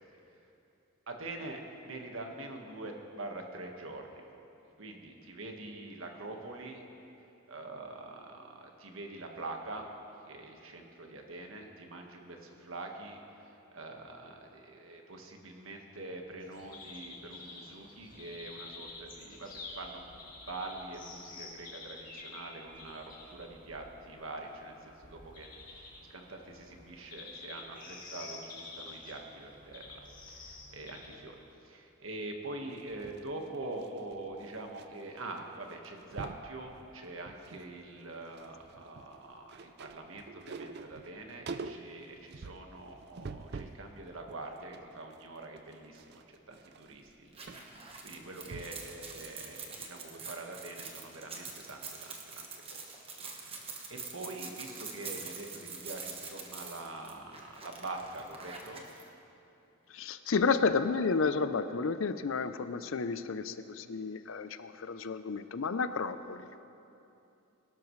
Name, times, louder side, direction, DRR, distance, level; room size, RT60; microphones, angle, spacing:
voice 1, 1.1-4.2 4.8-6.8 7.5-9.9 10.2-30.0 30.3-31.4 31.6-52.8 53.3-58.9, right 2 dB, 70° right, 2 dB, 1.5 m, -44 dB
sound 1, 16.4-31.5, left 3 dB, 40° left, 2.3 m, -49 dB
sound 2, 32.7-34.9 35.1-35.4 35.7-36.5 37.0-37.7 38.0-43.9 44.3-48.9 49.3-49.4, right 4 dB, 50° right, 0.5 m, -46 dB
sound 3, 47.3-59.0, right 5 dB, 25° right, 1.2 m, -45 dB
voice 2, 59.9-66.5, left 4 dB, 65° left, 12 dB, 0.5 m, -31 dB
22.0 x 12.0 x 3.2 m, 2.8 s
head